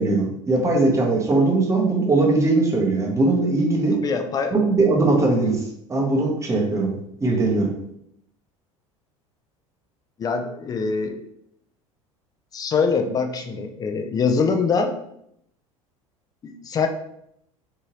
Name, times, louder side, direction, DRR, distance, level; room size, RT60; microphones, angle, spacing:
voice 1, 0.0-4.0 4.5-7.7, right 2 dB, 15° right, 0 dB, 0.8 m, -20 dB
voice 2, 4.0-4.5 10.2-11.2 12.5-15.0 16.4-16.9, left 5 dB, 20° left, 6 dB, 0.4 m, -23 dB
2.8 x 2.7 x 2.9 m, 0.73 s
figure-of-eight pair, 70°, 18 cm